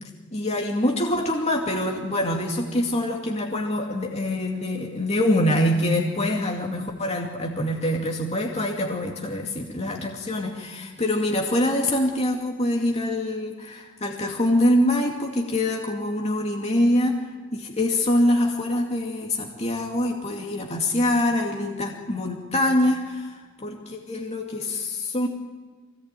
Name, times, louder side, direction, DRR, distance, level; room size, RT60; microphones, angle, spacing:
voice 1, 0.0-17.2 17.5-25.3, left 1 dB, 35° left, 0 dB, 2.4 m, -24 dB
24.0 x 18.0 x 9.1 m, 1.5 s
head